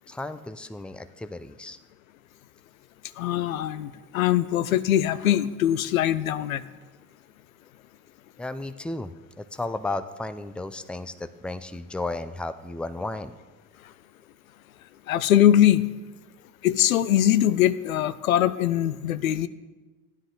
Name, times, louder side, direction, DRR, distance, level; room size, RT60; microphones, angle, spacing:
voice 1, 0.1-1.8 8.4-9.1 9.4-13.3, left 2 dB, 5° left, 11 dB, 0.5 m, -34 dB
voice 2, 3.2-6.6 15.1-15.9 16.6-19.5, left 11 dB, 90° left, 15 dB, 0.5 m, -22 dB
15.0 x 9.8 x 3.9 m, 1.3 s
hypercardioid pair, 65°, 40 cm